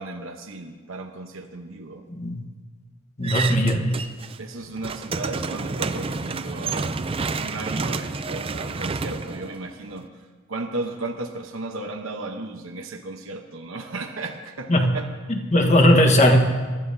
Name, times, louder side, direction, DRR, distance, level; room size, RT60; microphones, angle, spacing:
voice 1, 0.0-2.1 4.4-10.1 10.5-15.1, right 2 dB, 70° right, 3 dB, 1.0 m, -34 dB
voice 2, 2.1-2.4 3.2-4.0 14.7-14.9 15.3-16.4, left 1 dB, 35° left, 4 dB, 1.3 m, -18 dB
sound 1, 3.2-4.4 4.7-10.0, right 4 dB, 25° right, 0.4 m, -29 dB
23.5 x 12.5 x 2.7 m, 1.4 s
head